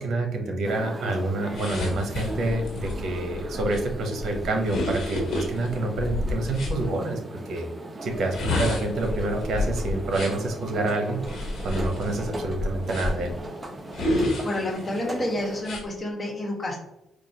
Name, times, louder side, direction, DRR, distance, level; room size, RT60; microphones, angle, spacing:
voice 1, 0.0-7.7 8.0-11.2 11.6-13.3, right 2 dB, 65° right, 3 dB, 0.8 m, -27 dB
sound 1, 0.6-15.6, right 1 dB, 20° right, 0.6 m, -38 dB
sound 2, 1.5-6.8 8.1-10.5 11.2-13.3 13.9-15.0 15.6-15.8, left 2 dB, 65° left, 1.3 m, -30 dB
voice 2, 14.4-16.8, left 1 dB, 30° left, -1 dB, 1.3 m, -29 dB
4.5 x 2.3 x 2.8 m, 0.88 s
cardioid pair, 90°, 0 cm